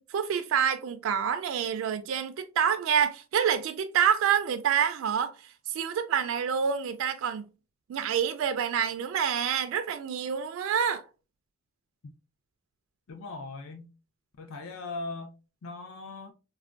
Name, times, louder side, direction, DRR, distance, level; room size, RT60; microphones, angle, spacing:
voice 1, 0.0-7.5 7.9-11.0, right 8 dB, 70° right, 0.3 m, -27 dB
voice 2, 13.1-13.9 14.4-15.3 15.6-16.3, left 3 dB, 80° left, 0.5 m, -39 dB
3.4 x 2.2 x 2.4 m
head